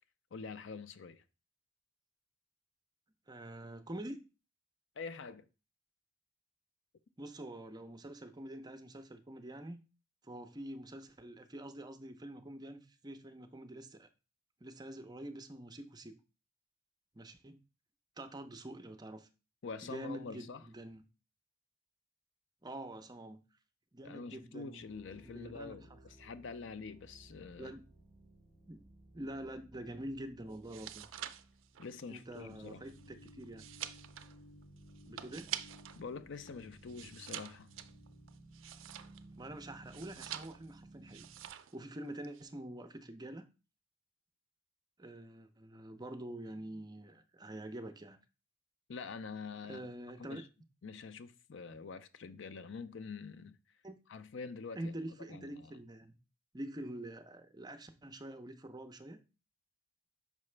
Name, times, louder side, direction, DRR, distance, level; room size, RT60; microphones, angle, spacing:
voice 1, 0.3-1.2 5.0-5.4 19.6-20.6 24.0-27.7 31.8-32.9 36.0-37.7 48.9-49.9 50.3-50.5 50.8-53.6 54.1-54.9 55.3-55.8, left 4 dB, 65° left, 0.5 m, -46 dB
voice 2, 3.3-4.2 7.2-9.8 10.2-14.1 14.6-16.2 17.1-17.6 18.2-19.3 19.8-21.0 22.6-23.4 23.9-24.8 25.2-26.0 27.6-27.8 28.7-28.8 29.1-31.1 32.1-33.6 35.1-35.6 39.4-41.3 41.7-43.5 45.0-48.2 49.7-50.4 53.8-54.0 54.8-56.2 56.5-59.2, right 1 dB, 20° right, 0.5 m, -46 dB
sound 1, 24.8-41.5, right 1 dB, 40° left, 2.7 m, -58 dB
sound 2, 30.5-36.0 36.3-39.4 39.9-40.8 41.1-41.8 42.0-42.4, right 11 dB, 75° right, 0.4 m, -46 dB
6.1 x 4.8 x 3.2 m
head